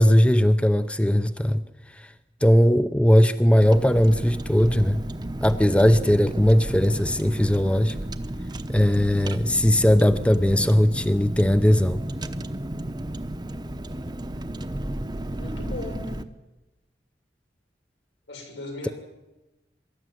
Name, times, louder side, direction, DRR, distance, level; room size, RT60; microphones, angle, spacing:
voice 1, 0.0-1.6 2.0-2.1 2.4-5.0 5.4-7.9 8.7-12.0, equal, 5° left, 12 dB, 0.6 m, -19 dB
Car, 3.6-16.2, right 1 dB, 25° right, 0.9 m, -33 dB
voice 2, 15.4-16.1 18.3-18.9, left 2 dB, 85° left, 2 dB, 6.5 m, -37 dB
24.0 x 13.0 x 9.2 m, 1.0 s
head